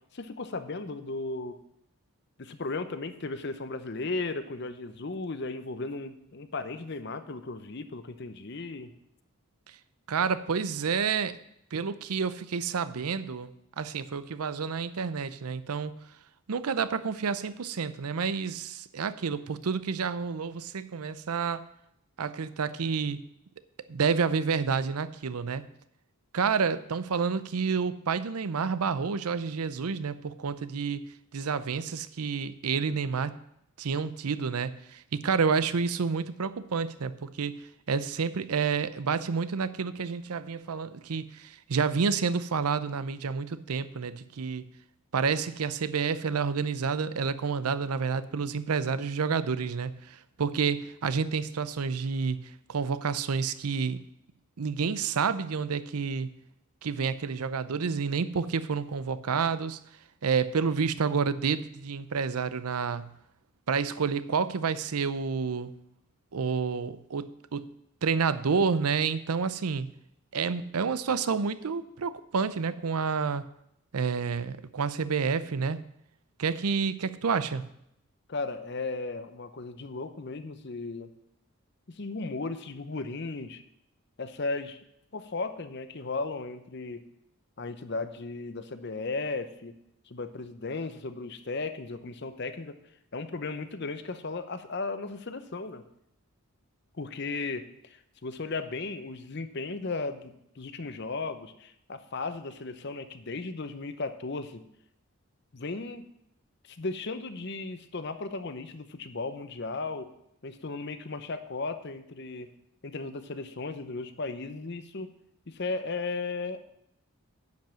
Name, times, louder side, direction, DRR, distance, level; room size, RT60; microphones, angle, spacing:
voice 1, 0.1-1.6 2.4-8.9 78.3-81.1 81.9-83.6 84.2-84.8 85.1-87.0 87.6-89.8 90.1-92.8 93.1-95.8 97.0-104.6 105.5-106.1 106.7-110.1 110.4-112.5 112.8-115.1 115.5-116.6, left 3 dB, 50° left, 11 dB, 0.7 m, -35 dB
voice 2, 10.1-11.4 11.7-13.5 13.8-15.9 16.5-21.6 22.2-23.2 23.9-25.6 26.3-31.0 31.3-33.3 33.8-37.6 37.9-44.7 45.1-54.0 54.6-56.3 56.8-59.8 60.2-63.1 63.7-65.7 66.3-67.7 68.0-69.9 70.3-73.4 73.9-75.8 76.4-77.6, right 5 dB, 85° right, 15 dB, 0.6 m, -29 dB
10.5 x 5.4 x 7.5 m, 0.77 s
head